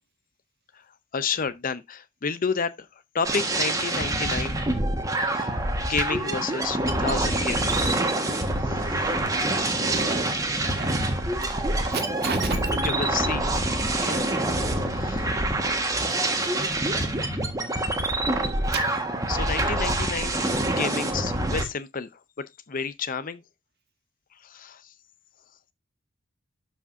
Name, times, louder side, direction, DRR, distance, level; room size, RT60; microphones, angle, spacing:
voice 1, 1.1-2.9 3.1-4.6 5.2-8.3 8.6-9.2 12.8-13.7 14.0-14.3 14.9-15.4 19.3-20.4 20.7-23.4 24.4-24.9, left 5 dB, 40° left, 0.6 m, -31 dB
sound 1, 3.2-21.6, right 1 dB, 15° right, 1.5 m, -26 dB
voice 2, 9.6-10.3 10.7-11.1 11.9-12.7, right 5 dB, 50° right, 1.7 m, -35 dB
12.5 x 5.0 x 2.6 m
head